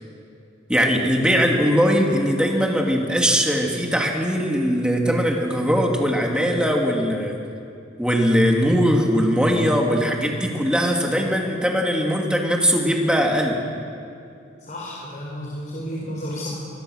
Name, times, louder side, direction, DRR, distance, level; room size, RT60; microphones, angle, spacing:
voice 1, 0.7-7.4 8.0-13.6, equal, 5° right, 0 dB, 2.6 m, -20 dB
voice 2, 14.6-16.5, equal, 40° left, -4 dB, 4.1 m, -32 dB
24.5 x 21.5 x 6.6 m, 2.6 s
head